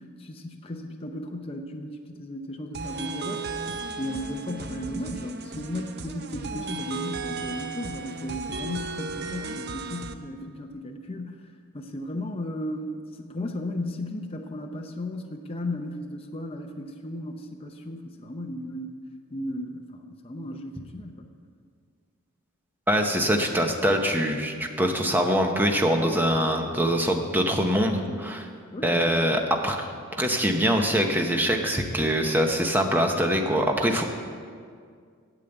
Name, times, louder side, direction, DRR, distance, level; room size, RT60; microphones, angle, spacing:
voice 1, 0.0-3.4 4.0-11.4 11.7-18.9 19.3-21.3 28.0-28.2 28.7-29.2, left 1 dB, 25° left, 2 dB, 0.6 m, -35 dB
sound 1, 2.7-10.1, right 4 dB, 50° right, 0.6 m, -35 dB
voice 2, 22.9-28.4 28.8-34.0, equal, 10° right, 3 dB, 0.8 m, -24 dB
8.8 x 8.2 x 8.0 m, 2.1 s
head